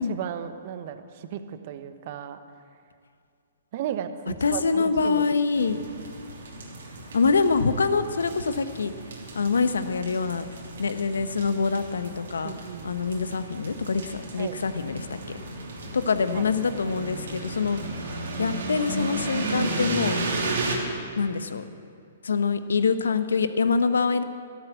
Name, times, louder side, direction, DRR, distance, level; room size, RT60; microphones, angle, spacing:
voice 1, 0.0-2.4 3.7-5.2 12.4-12.9 14.4-14.6 16.3-16.4, right 9 dB, 50° right, 10 dB, 1.0 m, -35 dB
voice 2, 4.4-5.8 7.1-8.9 9.3-10.4 10.8-12.5 12.8-15.2 15.9-17.8 18.4-20.2 21.2-21.6 22.2-24.2, left 4 dB, 85° left, 11 dB, 0.9 m, -25 dB
sound 1, 5.5-20.8, right 2 dB, 75° right, 3.1 m, -34 dB
12.5 x 12.0 x 8.1 m, 2.4 s
hypercardioid pair, 130°, 0 cm